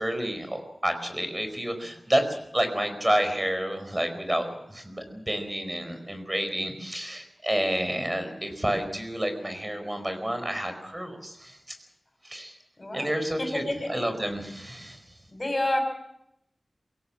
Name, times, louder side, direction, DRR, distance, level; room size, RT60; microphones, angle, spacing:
voice 1, 0.0-2.2 2.5-11.6 12.2-12.5 12.9-15.0, right 1 dB, 20° right, 7 dB, 4.7 m, -29 dB
voice 2, 12.8-13.1 13.4-13.9 15.3-15.8, left 1 dB, 30° left, 5 dB, 6.8 m, -29 dB
23.5 x 17.0 x 7.4 m, 0.79 s
wide cardioid pair, 80°, 0 cm